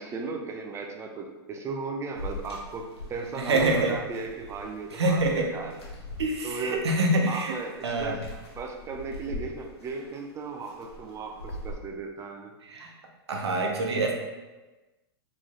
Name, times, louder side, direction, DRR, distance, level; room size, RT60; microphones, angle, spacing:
voice 1, 0.0-5.8 6.4-6.9 7.3-8.2 8.5-12.5, right 4 dB, 20° right, 3 dB, 0.4 m, -36 dB
sound 1, 2.2-11.7, left 1 dB, 80° left, 1.1 m, -43 dB
voice 2, 3.4-3.9 4.9-5.5 6.2-7.5 7.8-8.2 12.7-12.9 13.3-14.1, right 2 dB, 90° right, 1 dB, 0.8 m, -25 dB
3.8 x 3.2 x 2.4 m, 1.2 s
hypercardioid pair, 125°, 14 cm